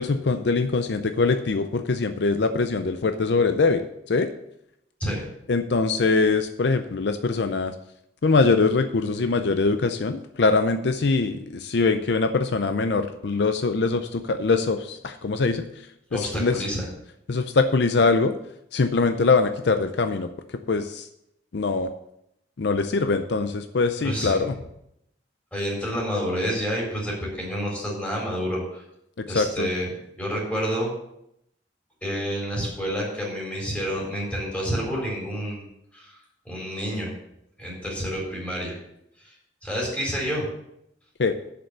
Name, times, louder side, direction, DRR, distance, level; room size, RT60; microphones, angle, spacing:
voice 1, 0.0-3.8 4.1-4.3 5.5-7.7 8.2-15.7 16.1-16.6 17.3-18.3 18.7-20.3 20.7-21.1 21.5-21.9 22.6-24.5 29.2-29.7 41.2-41.3, left 4 dB, 70° left, 9 dB, 0.6 m, -23 dB
voice 2, 16.1-16.9 24.0-24.4 25.5-28.8 29.3-29.9 30.1-30.9 32.0-35.6 35.9-36.1 36.4-37.1 37.6-38.7 39.2-39.3 39.6-40.5, equal, 10° left, -3 dB, 4.0 m, -29 dB
7.7 x 6.9 x 6.6 m, 0.78 s
head